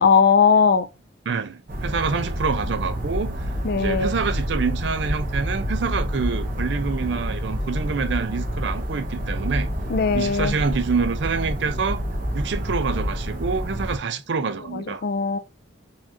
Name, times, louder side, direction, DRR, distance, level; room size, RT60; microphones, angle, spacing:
voice 1, 0.0-0.9 3.6-4.1 9.9-10.5 14.7-15.4, left 5 dB, 50° left, 0.4 m, -19 dB
voice 2, 1.3-9.7 10.1-12.0 12.3-15.0, right 5 dB, 60° right, 0.4 m, -26 dB
sound 1, 1.7-14.0, equal, 45° right, 0.9 m, -28 dB
4.1 x 2.5 x 2.8 m
head